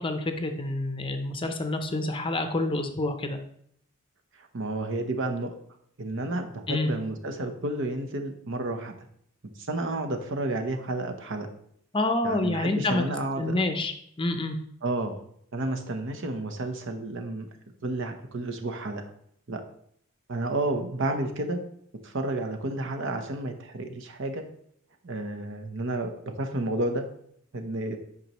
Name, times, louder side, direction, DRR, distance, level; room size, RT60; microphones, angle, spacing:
voice 1, 0.0-3.4 6.7-6.9 11.9-13.0 13.4-14.6, left 2 dB, 25° left, 7 dB, 0.6 m, -28 dB
voice 2, 4.4-5.5 6.0-8.9 9.4-11.5 12.2-13.6 14.8-15.2 15.5-17.5 17.8-19.0 19.5-19.6 20.3-21.6 22.0-24.5 25.0-27.1 27.5-28.0, right 2 dB, 60° right, 5 dB, 0.9 m, -31 dB
8.4 x 5.3 x 3.0 m, 0.69 s
head